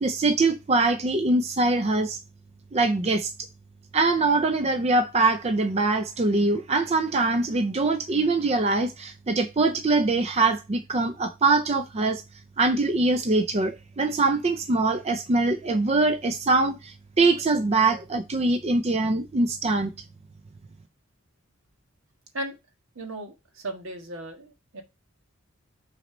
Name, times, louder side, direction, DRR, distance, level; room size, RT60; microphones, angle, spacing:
voice 1, 0.0-2.2 2.7-3.3 3.9-12.2 12.6-19.9, right 3 dB, 30° right, 0.4 m, -23 dB
voice 2, 22.9-24.8, right 1 dB, 75° right, 1.6 m, -36 dB
6.2 x 4.2 x 5.0 m
head